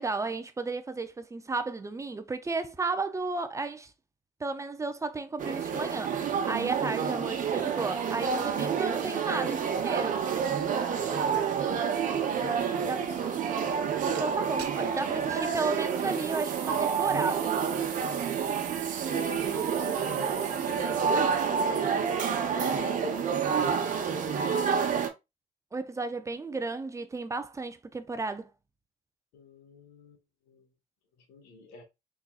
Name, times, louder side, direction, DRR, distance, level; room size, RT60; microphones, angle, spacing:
voice 1, 0.0-3.9 4.4-10.2 12.9-13.0 14.0-17.5 25.7-28.5, right 3 dB, 20° right, 0.5 m, -33 dB
sound 1, 5.4-25.1, right 7 dB, 50° right, 1.0 m, -29 dB
voice 2, 10.8-13.3 19.4-25.1 29.3-30.2 30.5-30.7 31.2-31.8, left 2 dB, 90° left, 1.5 m, -46 dB
sound 2, 14.1-14.2 14.6-15.2 15.7-21.3, right 9 dB, 80° right, 0.9 m, -43 dB
4.1 x 3.8 x 2.4 m
cardioid pair, 110°, 17 cm